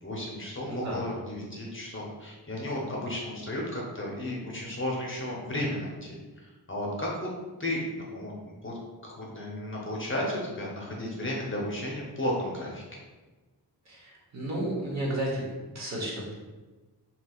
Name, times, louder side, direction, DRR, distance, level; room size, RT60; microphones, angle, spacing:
voice 1, 0.0-7.3 7.6-8.3 8.6-8.7 9.0-12.8, left 1 dB, 30° left, -3 dB, 0.7 m, -33 dB
voice 2, 0.6-1.0 13.9-15.4 15.7-16.3, right 1 dB, 40° right, -4 dB, 1.0 m, -32 dB
3.3 x 2.8 x 2.3 m, 1.2 s
wide cardioid pair, 100°, 41 cm